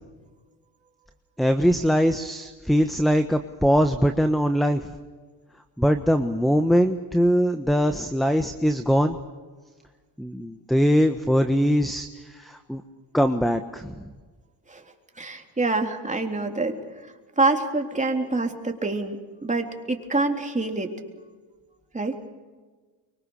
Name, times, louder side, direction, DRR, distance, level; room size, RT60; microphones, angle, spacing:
voice 1, 1.4-4.9 5.8-9.2 10.2-12.8 13.1-14.1, equal, ahead, 9 dB, 1.2 m, -22 dB
voice 2, 15.2-16.8 17.4-20.9 21.9-22.2, right 3 dB, 15° right, 2 dB, 3.7 m, -26 dB
24.0 x 24.0 x 6.5 m, 1.4 s
supercardioid pair, 90°, 48 cm